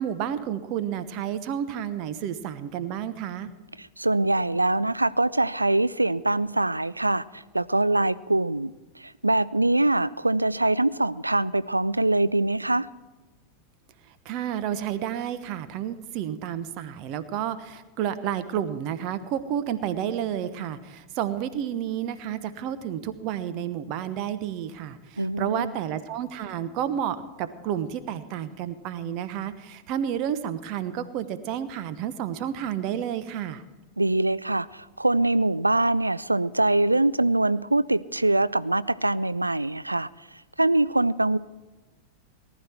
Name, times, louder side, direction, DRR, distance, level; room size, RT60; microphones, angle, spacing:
voice 1, 0.0-3.5 14.2-33.6, right 9 dB, 40° right, 1.0 m, -31 dB
voice 2, 3.8-12.9 25.2-25.7 34.0-40.1 40.6-41.4, right 2 dB, 85° right, 0.4 m, -23 dB
19.0 x 11.0 x 4.5 m
figure-of-eight pair, 90°, 0 cm